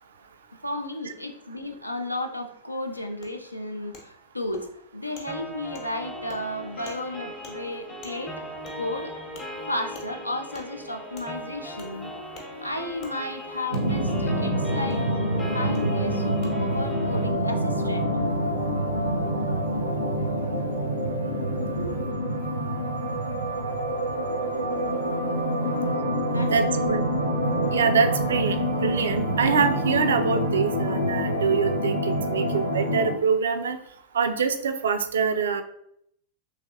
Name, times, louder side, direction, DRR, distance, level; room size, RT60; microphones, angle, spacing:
voice 1, 0.6-4.7 4.9-8.4 8.7-9.2 9.6-12.1 12.6-15.0 15.5-18.2 21.7-22.2 25.6-25.9 26.2-27.0, left 1 dB, 85° left, 6 dB, 0.4 m, -33 dB
Wood, 3.2-3.3 3.9-4.0 4.5-4.6 5.1-5.3 5.7-5.9 6.3-6.4 6.8-7.0 7.4-7.5 8.0-8.1 8.6-8.8 9.3-9.5 9.9-10.1 10.5-10.7 11.1-11.3 11.8-11.9 12.3-12.5 13.0-13.1 13.7-13.8 14.9-15.0 15.7-15.8 16.4-16.5, left 3 dB, 45° left, 0.8 m, -45 dB
sound 1, 5.3-17.3, equal, 15° left, 0.6 m, -39 dB
sound 2, 13.7-33.1, equal, 85° right, 0.7 m, -26 dB
voice 2, 26.5-27.0 27.7-33.8 34.1-35.6, right 5 dB, 65° right, 9 dB, 0.3 m, -24 dB
3.3 x 3.1 x 2.6 m, 0.71 s
figure-of-eight pair, 90°, 0 cm